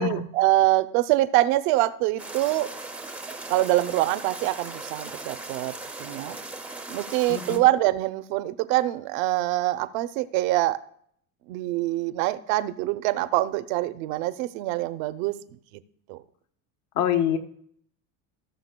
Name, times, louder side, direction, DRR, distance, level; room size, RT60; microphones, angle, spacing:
voice 1, 0.0-2.7 3.5-6.4 6.9-10.8 11.5-15.6 16.1-16.2, right 16 dB, 85° right, 13 dB, 0.7 m, -25 dB
sound 1, 2.2-7.6, right 2 dB, 5° right, 0.4 m, -38 dB
voice 2, 7.3-7.6 17.0-17.4, left 10 dB, 80° left, 6 dB, 1.1 m, -25 dB
17.5 x 6.7 x 2.2 m, 0.65 s
cardioid pair, 155°, 40 cm